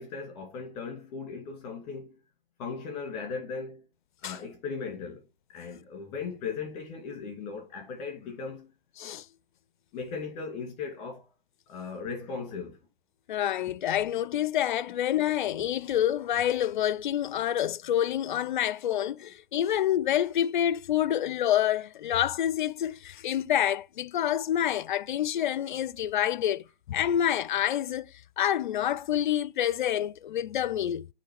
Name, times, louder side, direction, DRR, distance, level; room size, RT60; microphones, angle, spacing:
voice 1, 0.0-2.2 2.6-3.8 4.2-5.2 5.5-8.7 9.9-11.3 11.7-12.8, left 5 dB, 25° left, 2.2 m, -37 dB
voice 2, 13.3-28.1 28.4-31.1, left 11 dB, 55° left, 0.4 m, -27 dB
8.4 x 3.2 x 4.7 m
hypercardioid pair, 145°, 29 cm